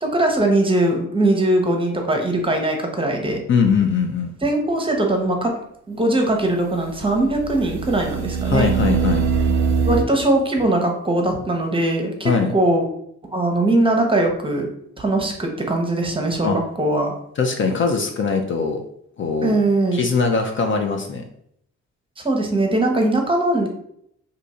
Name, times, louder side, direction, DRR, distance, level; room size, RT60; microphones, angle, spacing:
voice 1, 0.0-3.4 4.4-5.5 5.9-8.7 9.9-12.9 13.3-14.7 15.0-17.2 19.4-20.1 22.2-23.7, right 1 dB, 15° right, 2 dB, 0.8 m, -20 dB
voice 2, 3.5-4.3 8.5-9.3 12.2-12.5 16.4-16.6 17.4-18.8 19.2-19.6 19.9-21.3, left 5 dB, 40° left, 4 dB, 0.5 m, -21 dB
sound 1, 3.6-3.7 7.1-10.0, right 5 dB, 60° right, 0.5 m, -22 dB
2.7 x 2.5 x 4.2 m, 0.72 s
cardioid pair, 90°, 30 cm